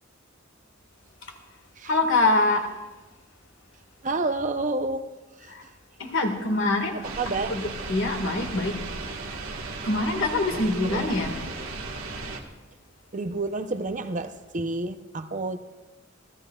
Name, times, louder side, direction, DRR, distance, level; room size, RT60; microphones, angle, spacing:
voice 1, 1.9-2.7 5.5-5.6 6.0-7.0 7.3-8.7 9.8-11.4, left 2 dB, 65° left, 1.8 m, -24 dB
voice 2, 4.0-5.1 5.4-5.5 6.9-7.6 10.5-11.1 13.1-15.6, right 2 dB, 35° right, 0.7 m, -30 dB
sound 1, 7.0-12.4, right 3 dB, 85° right, 1.6 m, -35 dB
27.5 x 14.5 x 2.4 m
head